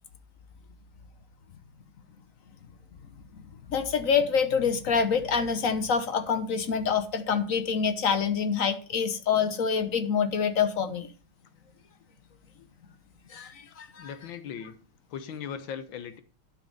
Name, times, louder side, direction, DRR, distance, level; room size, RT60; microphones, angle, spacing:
voice 1, 3.7-11.1 13.3-14.1, left 6 dB, 50° left, 9 dB, 1.1 m, -26 dB
voice 2, 14.0-14.8 15.1-16.2, left 8 dB, 70° left, 10 dB, 1.6 m, -38 dB
12.0 x 5.3 x 5.2 m, 0.39 s
omnidirectional pair, 2.3 m